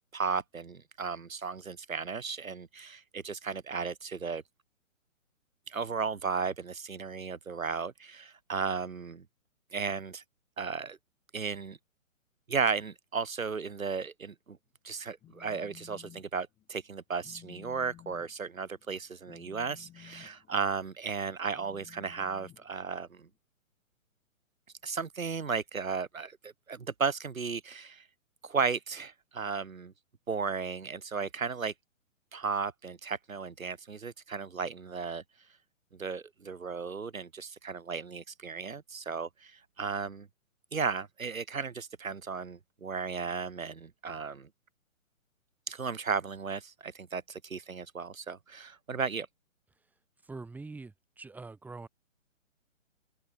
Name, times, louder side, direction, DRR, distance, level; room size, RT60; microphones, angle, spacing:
voice 1, 0.1-4.4 5.7-9.2 9.7-10.2 10.6-11.0 11.3-11.8 12.5-14.6 14.8-23.3 24.8-28.0 28.4-29.9 30.3-31.7 32.3-35.2 36.0-39.5 39.8-40.3 40.7-44.5 45.7-49.3, right 5 dB, 80° right, 1.5 m, -35 dB
Telephone, 15.0-16.2 16.6-16.9 17.2-23.3, left 12 dB, 15° left, 4.9 m, -55 dB
voice 2, 50.2-51.9, right 3 dB, 5° right, 2.0 m, -44 dB
open air
figure-of-eight pair, 130°, 40 cm